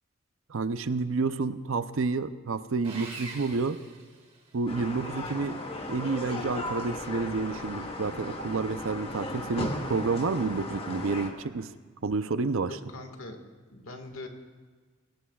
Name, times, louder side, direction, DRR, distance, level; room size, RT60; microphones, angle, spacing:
voice 1, 0.5-3.8 4.5-5.6 5.9-11.7 12.0-12.8, right 4 dB, 70° right, 12 dB, 0.6 m, -29 dB
Sawing, 2.8-4.7, right 3 dB, 30° right, 2.0 m, -44 dB
sound 1, 4.7-11.3, left 1 dB, 30° left, 1.2 m, -36 dB
voice 2, 12.7-13.4 13.7-14.3, left 2 dB, 80° left, 4 dB, 1.7 m, -42 dB
22.5 x 17.5 x 2.4 m, 1.5 s
head